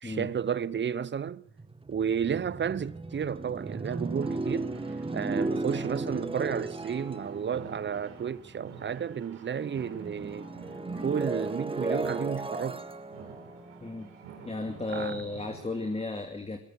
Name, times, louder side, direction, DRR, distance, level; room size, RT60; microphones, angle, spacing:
voice 1, 0.0-1.4 1.9-4.7 5.1-10.5 11.0-12.8 14.9-15.2, right 7 dB, 30° right, 0.9 m, -32 dB
sound 1, 1.5-9.2 9.6-14.7, right 2 dB, 15° right, 1.6 m, -36 dB
sound 2, 3.9-16.0, right 6 dB, 85° right, 5.5 m, -49 dB
voice 2, 14.4-16.6, left 2 dB, 15° left, 2.6 m, -34 dB
22.5 x 19.0 x 6.6 m
hypercardioid pair, 60°, 35 cm